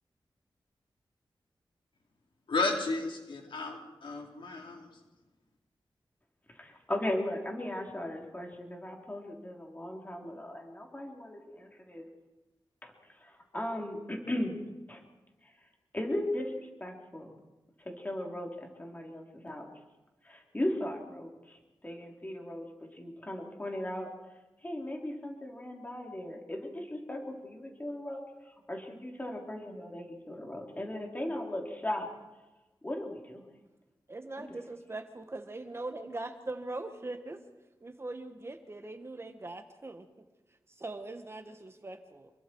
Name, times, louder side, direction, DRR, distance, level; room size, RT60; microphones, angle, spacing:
voice 1, 2.5-4.9, left 3 dB, 75° left, 1 dB, 4.1 m, -33 dB
voice 2, 6.5-12.1 12.8-14.6 14.9-15.0 15.4-15.5 15.9-17.4 17.8-19.7 20.2-21.6 21.8-24.1 24.6-32.1 32.8-33.4 34.4-34.6, left 1 dB, 20° left, 1 dB, 3.9 m, -37 dB
voice 3, 34.1-37.4 37.8-40.1 40.7-42.3, right 2 dB, 30° right, 8 dB, 1.4 m, -41 dB
27.0 x 23.0 x 4.7 m, 1.1 s
wide cardioid pair, 115°, 9 cm